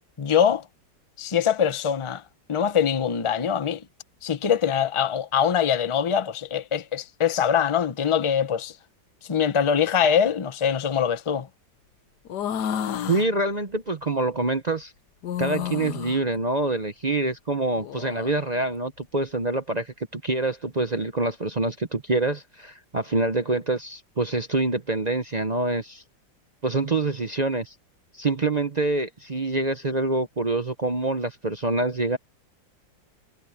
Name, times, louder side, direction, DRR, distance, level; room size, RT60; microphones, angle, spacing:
voice 1, 0.2-0.6 1.2-2.2 2.5-3.8 4.2-8.7 9.3-11.5, left 8 dB, 35° left, 0.5 m, -23 dB
sound 1, 12.3-13.3 15.2-16.2 17.7-18.4, left 9 dB, 65° left, 1.5 m, -30 dB
voice 2, 13.1-14.9 15.4-26.0 26.6-27.7 28.1-32.2, right 2 dB, 40° right, 0.6 m, -26 dB
omnidirectional pair, 2.0 m